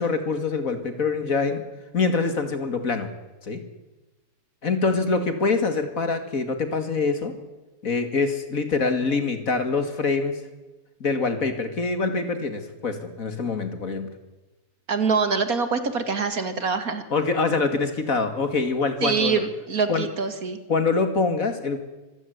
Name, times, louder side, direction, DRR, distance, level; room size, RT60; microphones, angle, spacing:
voice 1, 0.0-1.6 1.9-3.1 3.4-3.6 4.6-7.3 7.8-10.3 11.0-14.1 17.1-19.4 19.9-20.1 20.7-21.8, left 4 dB, 60° left, 8 dB, 2.6 m, -24 dB
voice 2, 14.9-17.0 19.0-20.6, right 5 dB, 60° right, 10 dB, 2.4 m, -24 dB
25.5 x 15.5 x 9.5 m, 1.1 s
omnidirectional pair, 1.7 m